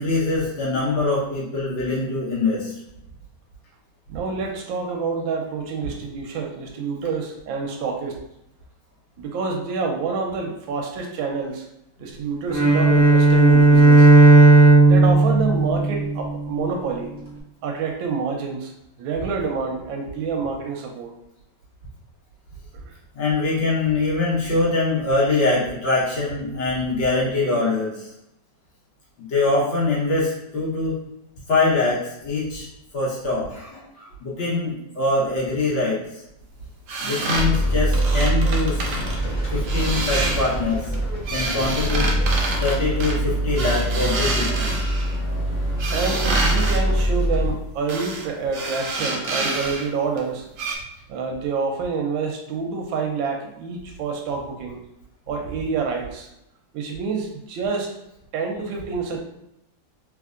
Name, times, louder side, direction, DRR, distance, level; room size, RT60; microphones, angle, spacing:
voice 1, 0.0-2.7 23.1-28.1 29.2-31.0 31.5-32.7 32.9-36.2 37.0-38.9 39.5-40.9 41.3-42.1 42.6-44.8, left 3 dB, 80° left, -6 dB, 1.8 m, -23 dB
voice 2, 4.1-8.2 9.2-11.6 12.0-14.1 14.8-17.1 17.6-18.7 19.0-21.1 22.8-22.9 45.9-50.5 51.1-54.8 55.3-56.3 56.7-57.9 58.3-59.2, right 5 dB, 90° right, 2 dB, 1.4 m, -27 dB
Bowed string instrument, 12.5-16.7, right 2 dB, 10° right, 1.0 m, -14 dB
sound 1, 36.9-39.2 39.6-40.6 40.9-45.2 45.8-46.8 47.9-48.3 48.5-49.9 50.2-50.3 50.6-50.8, right 2 dB, 70° right, 0.7 m, -28 dB
sound 2, 37.3-47.5, right 1 dB, 45° left, 0.6 m, -24 dB
3.4 x 3.2 x 2.4 m, 0.83 s
omnidirectional pair, 2.1 m